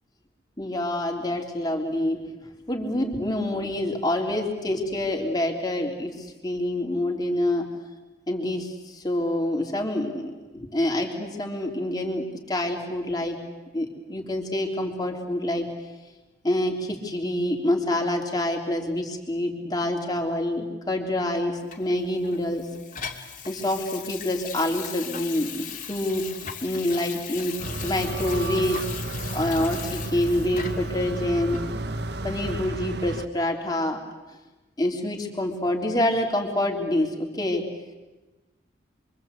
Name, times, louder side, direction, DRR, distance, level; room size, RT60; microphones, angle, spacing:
voice 1, 0.6-2.3 2.7-7.7 8.3-13.4 13.7-15.7 16.4-22.7 23.4-26.3 26.6-28.8 29.3-31.6 32.2-34.0 34.8-37.7, left 1 dB, 20° left, 2 dB, 3.5 m, -27 dB
Water tap faucet / Sink (filling or washing), 21.7-31.0 31.5-31.6, left 8 dB, 45° left, 2.6 m, -38 dB
sound 1, 27.6-33.3, right 2 dB, 60° right, 1.1 m, -32 dB
27.5 x 24.5 x 8.4 m, 1.1 s
head